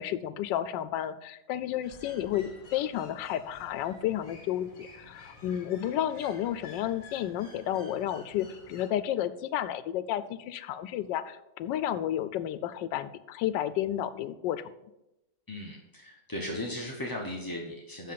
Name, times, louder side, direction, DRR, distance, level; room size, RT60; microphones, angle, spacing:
voice 1, 0.0-14.7, left 11 dB, 90° left, 14 dB, 1.2 m, -32 dB
sound 1, 1.8-8.9, left 3 dB, 50° left, 2.1 m, -51 dB
voice 2, 15.5-18.1, left 1 dB, 20° left, -1 dB, 0.5 m, -37 dB
7.6 x 6.3 x 5.7 m, 0.92 s
omnidirectional pair, 1.9 m